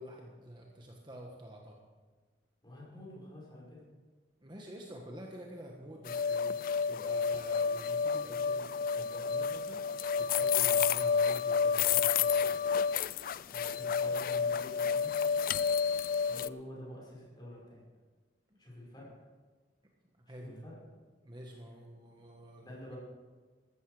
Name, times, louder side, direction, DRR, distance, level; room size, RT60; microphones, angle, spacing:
voice 1, 0.0-1.8 4.4-9.8 10.2-12.6 18.5-18.6 20.3-20.8 21.2-22.9, right 1 dB, 25° right, 0 dB, 1.3 m, -48 dB
voice 2, 2.6-3.8 13.5-15.1 16.3-17.8 18.6-19.2 20.3-20.8 22.6-23.0, left 1 dB, 25° left, -4 dB, 5.3 m, -48 dB
sound 1, 6.1-16.5, left 6 dB, 50° left, 0.3 m, -30 dB
14.5 x 13.0 x 4.9 m, 1.4 s
head